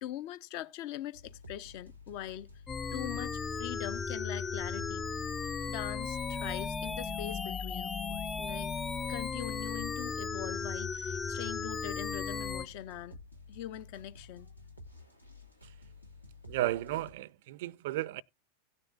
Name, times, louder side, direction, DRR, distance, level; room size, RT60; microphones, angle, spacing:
voice 1, 0.0-2.5 2.9-5.1 5.7-7.9 8.4-8.8 9.1-13.2 13.5-14.5, left 12 dB, 45° left, 0.7 m, -42 dB
sound 1, 1.1-17.1, left 3 dB, 90° left, 1.3 m, -52 dB
sound 2, 2.7-12.7, left 5 dB, 15° left, 0.4 m, -36 dB
voice 2, 16.5-18.2, right 15 dB, 55° right, 0.4 m, -34 dB
17.0 x 6.7 x 2.4 m
figure-of-eight pair, 90°, 0 cm